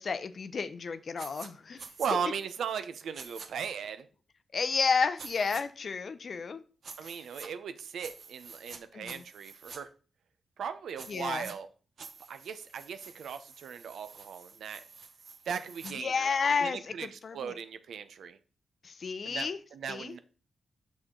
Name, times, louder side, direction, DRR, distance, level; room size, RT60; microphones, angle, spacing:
voice 1, 0.0-1.8 4.5-6.6 8.9-9.2 11.1-11.5 15.8-17.5 18.8-19.6 19.9-20.1, left 5 dB, 50° left, 0.6 m, -31 dB
sound 1, 1.2-1.5 1.8-2.1 3.1-3.5 5.2-5.6 6.8-7.5 8.0-8.8 9.0-9.8 11.0-11.5 12.0-15.9, right 5 dB, 60° right, 1.0 m, -48 dB
voice 2, 2.0-4.1 7.0-9.9 10.6-11.7 12.3-14.8 15.5-16.3 16.6-18.4 19.2-20.2, right 7 dB, 85° right, 0.7 m, -37 dB
6.5 x 6.1 x 3.8 m
cardioid pair, 100°, 0 cm